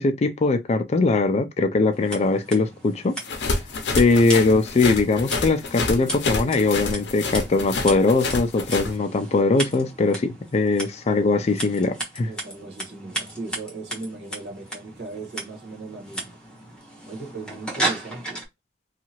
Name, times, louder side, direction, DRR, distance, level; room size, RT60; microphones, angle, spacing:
voice 1, 0.0-3.1 3.9-12.3, left 3 dB, 40° left, 0.3 m, -21 dB
Scissors, 1.9-18.5, right 1 dB, 5° left, 1.0 m, -35 dB
sound 1, 3.2-8.9, left 3 dB, 80° left, 0.6 m, -28 dB
voice 2, 12.2-16.4 17.1-18.4, right 3 dB, 75° right, 1.3 m, -38 dB
2.8 x 2.4 x 2.8 m
head